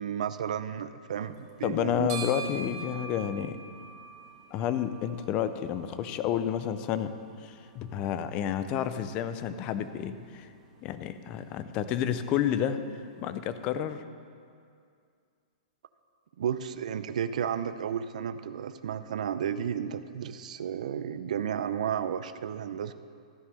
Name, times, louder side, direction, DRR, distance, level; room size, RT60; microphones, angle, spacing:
voice 1, 0.0-2.1 16.4-22.9, right 8 dB, 60° right, 12 dB, 0.4 m, -32 dB
sound 1, 1.1-13.6, right 6 dB, 30° right, 1.4 m, -47 dB
voice 2, 1.6-3.6 4.5-7.1 7.4-10.5 10.8-12.8 13.2-14.0, left 9 dB, 20° left, 11 dB, 0.4 m, -30 dB
13.0 x 5.4 x 6.3 m, 2.3 s
hypercardioid pair, 175°, 4 cm